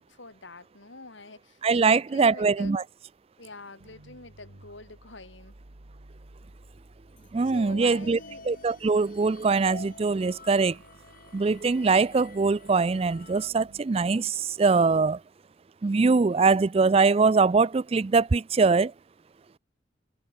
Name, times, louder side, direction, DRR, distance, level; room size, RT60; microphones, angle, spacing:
voice 1, 0.0-2.8 3.4-5.5 7.4-8.5, left 3 dB, 70° left, 3.4 m, -45 dB
voice 2, 1.6-2.8 7.3-8.2 8.5-10.8 11.3-15.2 15.8-18.9, right 4 dB, 30° right, 0.4 m, -22 dB
sound 1, 3.8-13.8, right 1 dB, 90° right, 2.0 m, -53 dB
sound 2, 7.9-13.5, left 3 dB, 45° left, 4.3 m, -49 dB
head